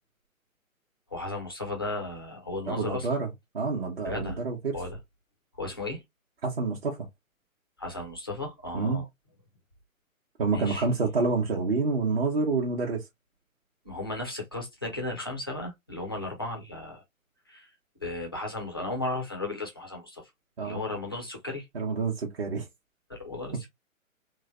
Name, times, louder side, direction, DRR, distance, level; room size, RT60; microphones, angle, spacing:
voice 1, 1.1-3.2 4.0-4.4 4.7-5.0 5.6-6.0 7.8-9.1 10.5-10.8 13.9-17.0 17.5-17.7 18.0-20.3 20.6-21.7 23.1-23.7, left 2 dB, 20° left, 0.4 m, -35 dB
voice 2, 2.7-3.3 3.5-4.8 6.4-7.1 8.7-9.0 10.4-13.1 20.6-20.8 21.7-22.7, right 4 dB, 45° right, 0.9 m, -28 dB
3.2 x 2.2 x 2.3 m
figure-of-eight pair, 130°, 42 cm